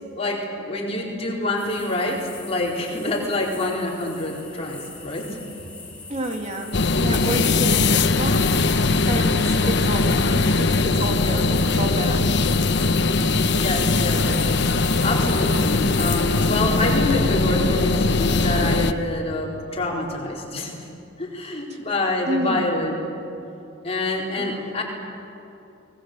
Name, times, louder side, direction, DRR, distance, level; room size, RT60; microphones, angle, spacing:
voice 1, 0.2-5.4 13.6-14.6 15.0-20.7 21.2-23.0 23.8-24.8, left 2 dB, 30° left, -2 dB, 4.5 m, -26 dB
sound 1, 1.6-16.6, left 3 dB, 5° left, 4.3 m, -40 dB
voice 2, 6.1-8.6 9.1-12.4 15.1-15.2 21.7-21.8 22.3-22.7 24.4-24.6, right 1 dB, 35° right, 2 dB, 2.2 m, -29 dB
sound 2, 6.7-18.9, left 3 dB, 60° left, 1.0 m, -20 dB
29.5 x 21.0 x 8.1 m, 2.9 s
head